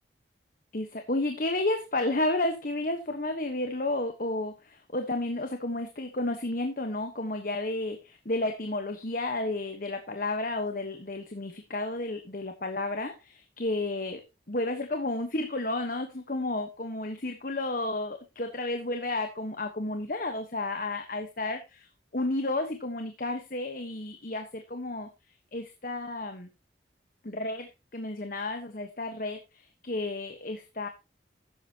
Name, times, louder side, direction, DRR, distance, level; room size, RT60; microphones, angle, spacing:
voice 1, 0.7-14.2 14.5-21.9 22.1-25.1 25.5-26.5 27.2-30.9, left 2 dB, 50° left, 6 dB, 1.3 m, -32 dB
13.5 x 9.8 x 2.9 m, 0.27 s
head